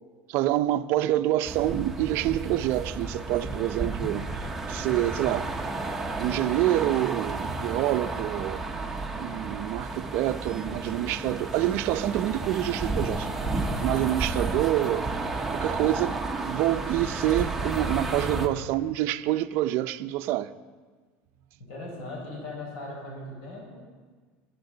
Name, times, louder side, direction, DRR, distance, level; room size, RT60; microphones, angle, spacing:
voice 1, 0.3-4.3 4.7-5.5 6.2-8.6 9.1-13.3 13.8-15.1 15.5-16.2 16.4-20.5, right 14 dB, 55° right, 0.5 m, -27 dB
sound 1, 1.4-18.5, right 3 dB, 5° right, 0.9 m, -32 dB
voice 2, 21.6-23.8, left 2 dB, 80° left, 5.2 m, -38 dB
24.0 x 11.5 x 3.9 m
cardioid pair, 160°, 5 cm